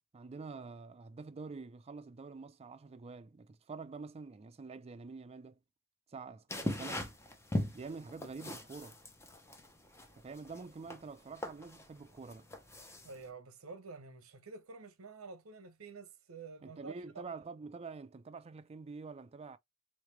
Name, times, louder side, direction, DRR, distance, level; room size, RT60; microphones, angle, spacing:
voice 1, 0.1-5.6 6.1-7.1 7.7-9.0 10.1-12.5 16.6-19.6, right 4 dB, 30° right, 0.4 m, -47 dB
sound 1, 6.5-13.3, left 1 dB, 15° left, 0.6 m, -40 dB
voice 2, 13.0-17.3, right 4 dB, 70° right, 0.8 m, -49 dB
3.6 x 3.1 x 3.2 m
head